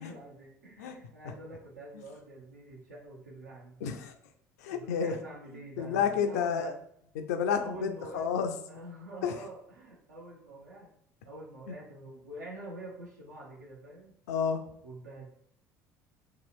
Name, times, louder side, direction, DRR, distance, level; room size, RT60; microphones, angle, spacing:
voice 1, 0.0-3.8 4.7-6.7 7.6-8.3 8.7-10.9 11.2-14.2 14.8-15.3, right 1 dB, 80° right, -3 dB, 0.6 m, -46 dB
voice 2, 3.8-4.1 4.6-5.2 5.5-6.7 7.1-8.6 9.2-9.4 11.7-11.8 14.3-14.7, left 7 dB, 65° left, 7 dB, 0.3 m, -31 dB
2.8 x 2.7 x 2.5 m, 0.70 s
figure-of-eight pair, 60°, 9 cm